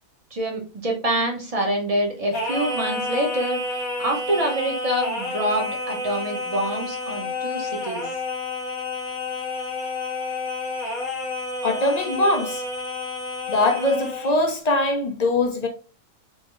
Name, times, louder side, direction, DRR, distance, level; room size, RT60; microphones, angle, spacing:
voice 1, 0.3-3.6 4.0-8.1, right 1 dB, 30° right, 1.0 m, -26 dB
Singing, 2.3-14.4, left 2 dB, 90° left, 1.5 m, -30 dB
voice 2, 11.6-12.6 13.5-15.7, left 2 dB, 40° left, 0.7 m, -22 dB
4.7 x 2.8 x 3.1 m
omnidirectional pair, 1.4 m